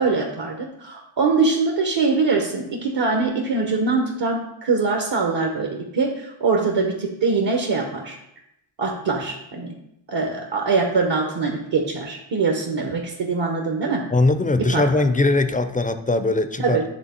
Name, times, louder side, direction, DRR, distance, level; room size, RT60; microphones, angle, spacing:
voice 1, 0.0-8.2 8.8-9.7 10.1-14.0 14.7-14.8 16.6-16.8, right 4 dB, 65° right, 1 dB, 0.9 m, -23 dB
voice 2, 14.1-16.8, left 2 dB, 20° left, 10 dB, 0.4 m, -20 dB
8.2 x 3.5 x 4.3 m, 0.82 s
wide cardioid pair, 80°, 47 cm